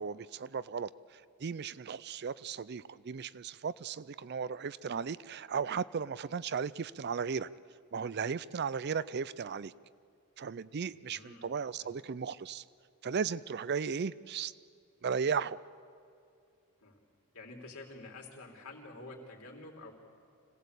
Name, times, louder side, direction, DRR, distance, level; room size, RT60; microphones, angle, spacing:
voice 1, 0.0-7.5 7.9-9.7 10.4-12.6 13.0-14.5 15.0-15.6, right 6 dB, 45° right, 18 dB, 0.4 m, -36 dB
voice 2, 11.1-11.9 16.8-17.0 17.3-19.9, left 2 dB, 75° left, 0 dB, 3.6 m, -49 dB
25.5 x 17.0 x 8.3 m, 2.4 s
head